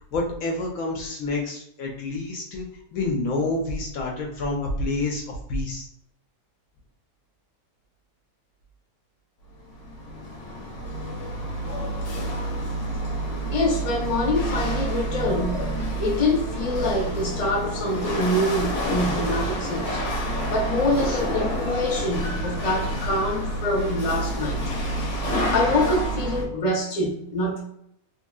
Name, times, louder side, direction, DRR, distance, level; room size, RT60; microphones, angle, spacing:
voice 1, 0.1-5.9 21.0-21.2, left 2 dB, 70° left, 1.0 m, -28 dB
Chatter / Hiss / Rattle, 9.6-26.5, right 1 dB, 90° left, 1.3 m, -28 dB
voice 2, 13.5-20.0 20.5-24.6 25.3-27.6, left 1 dB, 35° left, 0.7 m, -25 dB
2.9 x 2.6 x 2.2 m
omnidirectional pair, 1.6 m